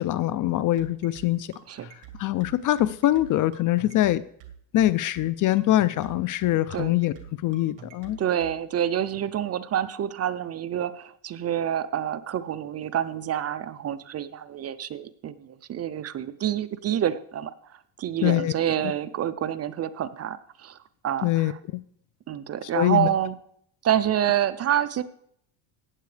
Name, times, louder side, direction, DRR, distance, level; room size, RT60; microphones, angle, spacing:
voice 1, 0.0-1.5 2.2-4.2 4.7-7.1 7.4-8.2 18.2-18.5 21.2-21.5 22.7-23.1, left 15 dB, 45° left, 18 dB, 0.4 m, -23 dB
sound 1, 0.8-8.6, right 9 dB, 60° right, 2.1 m, -45 dB
voice 2, 8.2-17.5 18.0-20.8 21.0-21.6 22.3-23.4 23.8-25.0, right 10 dB, 35° right, 14 dB, 0.5 m, -27 dB
15.0 x 9.3 x 3.3 m, 0.68 s
cardioid pair, 120°, 48 cm